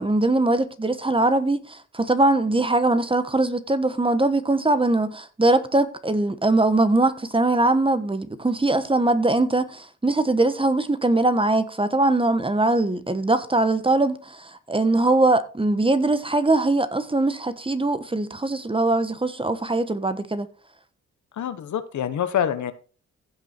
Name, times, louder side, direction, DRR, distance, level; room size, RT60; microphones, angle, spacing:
voice 1, 0.0-20.5, right 2 dB, 15° right, 1.2 m, -21 dB
voice 2, 21.4-22.7, left 9 dB, 70° left, 1.3 m, -26 dB
15.5 x 5.5 x 4.5 m
cardioid pair, 75°, 30 cm